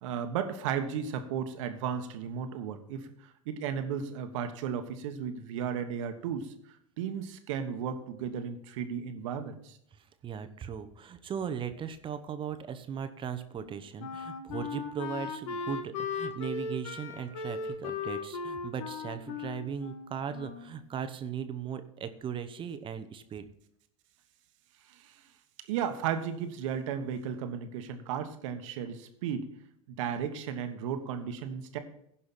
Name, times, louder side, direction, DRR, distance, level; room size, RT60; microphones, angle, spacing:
voice 1, 0.0-6.5 7.0-9.8 24.9-25.2 25.7-29.4 29.9-31.8, right 8 dB, 70° right, 8 dB, 1.3 m, -34 dB
voice 2, 9.9-23.5, right 7 dB, 30° right, 10 dB, 0.9 m, -38 dB
Wind instrument woodwind instrument, 13.6-20.8, left 5 dB, 70° left, 1.3 m, -37 dB
16.0 x 5.6 x 4.2 m, 0.71 s
hypercardioid pair, 100°, 17 cm